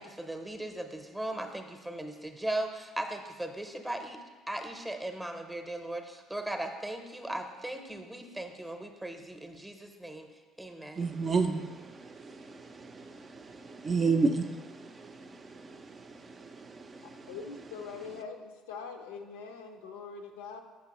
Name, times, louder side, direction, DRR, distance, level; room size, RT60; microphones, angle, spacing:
voice 1, 0.0-10.3 10.6-11.1, right 1 dB, 10° right, 5 dB, 0.7 m, -38 dB
voice 2, 11.0-11.7 12.2-12.3 12.8-13.0 13.7-14.9 16.4-16.5, right 4 dB, 35° right, 6 dB, 0.4 m, -28 dB
voice 3, 17.3-20.6, left 5 dB, 75° left, 4 dB, 0.4 m, -43 dB
6.0 x 5.8 x 3.0 m, 1.3 s
figure-of-eight pair, 55°, 0 cm